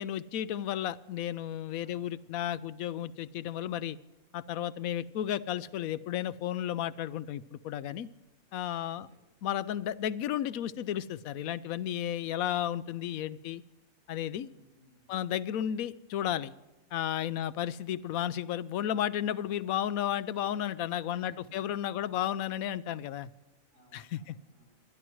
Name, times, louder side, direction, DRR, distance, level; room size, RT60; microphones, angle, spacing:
voice 1, 0.0-4.0 4.3-8.1 8.5-9.1 9.4-13.6 14.1-14.5 15.1-16.5 16.9-23.3 23.9-24.4, left 11 dB, 85° left, 16 dB, 1.1 m, -33 dB
voice 2, 1.8-2.3 8.8-9.2 14.4-15.3 21.1-22.3 23.7-24.7, equal, 85° right, -2 dB, 6.2 m, -63 dB
24.5 x 11.0 x 3.1 m, 1.1 s
omnidirectional pair, 1.4 m